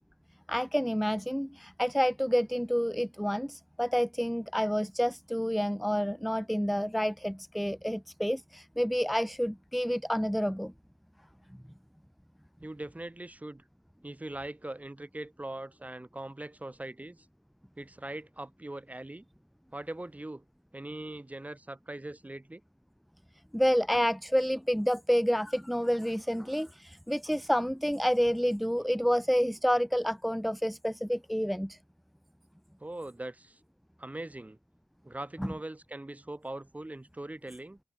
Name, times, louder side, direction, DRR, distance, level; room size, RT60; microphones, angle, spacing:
voice 1, 0.5-10.7 23.5-31.8 35.4-35.5, equal, ahead, 0.3 m, -29 dB
voice 2, 12.6-13.6 14.0-17.3 17.8-19.3 19.7-20.4 20.7-22.6 32.8-33.6 34.0-34.6 35.0-37.8, right 1 dB, 20° right, 4.0 m, -41 dB
cardioid pair, 70°, 8 cm